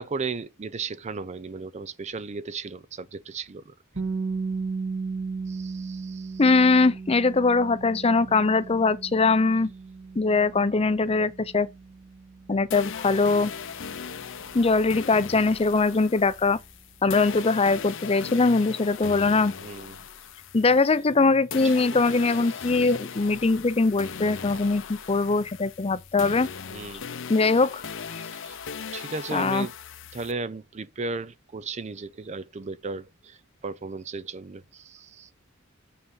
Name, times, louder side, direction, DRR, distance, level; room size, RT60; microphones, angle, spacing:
voice 1, 0.0-3.7 5.5-6.4 19.6-20.0 21.6-22.0 26.7-27.1 28.2-28.6 28.9-29.7 30.1-33.4 33.6-35.3, right 4 dB, 35° right, 0.4 m, -35 dB
sound 1, 3.9-15.8, right 4 dB, 60° right, 2.5 m, -36 dB
voice 2, 6.4-9.7 10.2-11.7 12.5-13.5 14.5-16.6 17.0-19.5 20.5-26.5 27.3-27.8 29.3-29.7, left 3 dB, 30° left, 0.6 m, -22 dB
sound 2, 12.7-21.2 21.5-30.3, left 6 dB, 65° left, 0.7 m, -38 dB
6.5 x 5.6 x 5.5 m
head